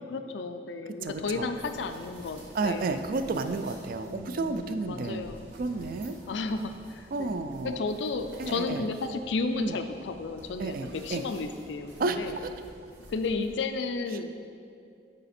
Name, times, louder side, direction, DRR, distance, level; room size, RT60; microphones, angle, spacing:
voice 1, 0.0-3.0 4.1-5.4 6.3-7.4 7.6-12.4 13.1-14.3, left 3 dB, 85° left, 8 dB, 0.4 m, -33 dB
voice 2, 1.0-1.5 2.5-5.3 5.6-6.2 7.1-7.8 8.4-8.9 9.6-9.8 10.6-11.2 12.0-12.2, right 3 dB, 50° right, 9 dB, 0.3 m, -31 dB
sound 1, 1.0-13.8, right 1 dB, 80° right, 1.1 m, -53 dB
sound 2, 1.1-13.5, equal, 15° right, 0.7 m, -53 dB
6.6 x 5.0 x 4.2 m, 2.4 s
head